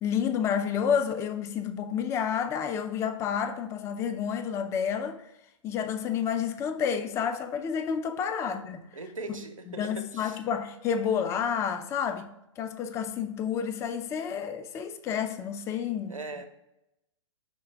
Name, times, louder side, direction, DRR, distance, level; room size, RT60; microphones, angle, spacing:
voice 1, 0.0-5.2 5.6-8.8 9.3-9.4 9.7-12.3 12.6-16.1, left 7 dB, 15° left, 0.4 m, -30 dB
voice 2, 8.9-10.4 16.1-16.4, right 2 dB, 90° right, 0.7 m, -40 dB
5.7 x 3.2 x 5.6 m
figure-of-eight pair, 110°, 17 cm